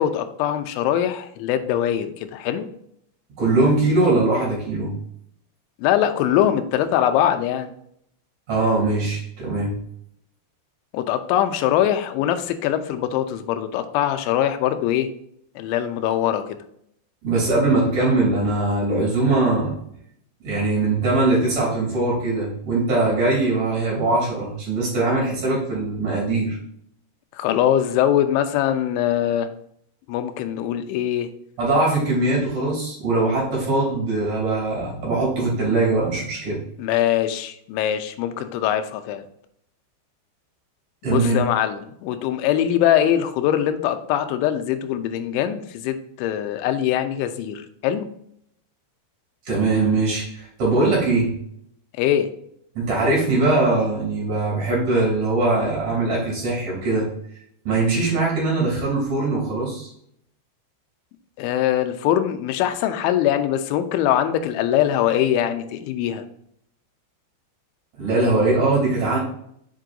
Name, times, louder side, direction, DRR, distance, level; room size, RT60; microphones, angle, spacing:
voice 1, 0.0-2.7 5.8-7.7 10.9-15.1 15.6-16.6 27.3-29.5 30.1-31.3 36.8-39.2 41.1-48.1 52.0-52.3 61.4-66.2, left 11 dB, 90° left, 8 dB, 3.1 m, -22 dB
voice 2, 3.4-4.9 8.5-9.8 17.2-19.7 20.4-26.6 31.6-36.6 41.0-41.4 49.5-51.3 52.8-57.1 57.6-59.9 68.0-69.2, right 2 dB, 45° right, -3 dB, 4.1 m, -21 dB
7.6 x 7.5 x 2.6 m, 0.70 s
omnidirectional pair, 5.3 m